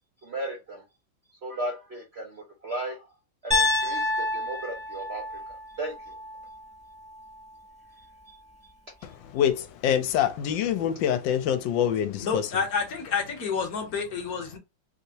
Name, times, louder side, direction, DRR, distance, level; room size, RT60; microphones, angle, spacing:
voice 1, 0.2-0.8 1.4-3.1 3.4-5.2 5.5-6.1, right 1 dB, 60° right, 0.7 m, -35 dB
Piano, 3.5-7.6, left 2 dB, 5° right, 0.7 m, -29 dB
voice 2, 9.0-12.4, left 9 dB, 80° left, 1.3 m, -25 dB
voice 3, 12.2-14.6, left 5 dB, 60° left, 1.2 m, -29 dB
3.3 x 2.8 x 2.7 m
omnidirectional pair, 2.0 m